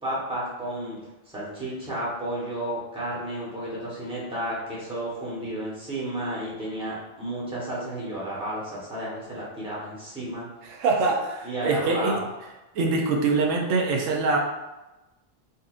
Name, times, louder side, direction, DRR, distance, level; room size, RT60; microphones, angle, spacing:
voice 1, 0.0-1.0 1.2-10.4 11.4-12.3, right 1 dB, 5° right, -8 dB, 1.0 m, -32 dB
voice 2, 10.6-12.2 12.7-14.4, right 3 dB, 90° right, 1 dB, 1.0 m, -24 dB
4.1 x 2.6 x 2.4 m, 1.0 s
omnidirectional pair, 1.3 m